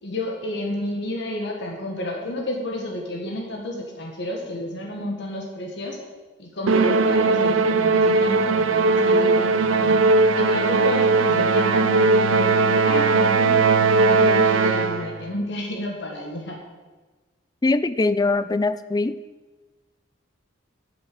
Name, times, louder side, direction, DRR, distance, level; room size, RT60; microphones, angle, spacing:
voice 1, 0.0-6.0 6.4-10.0 10.3-13.7 14.0-16.6, left 1 dB, 60° left, 1 dB, 1.8 m, -31 dB
Musical instrument, 6.7-15.2, right 3 dB, 85° right, 0.7 m, -18 dB
voice 2, 17.6-19.2, left 3 dB, 20° left, 14 dB, 0.4 m, -22 dB
9.0 x 8.0 x 7.7 m, 1.3 s
head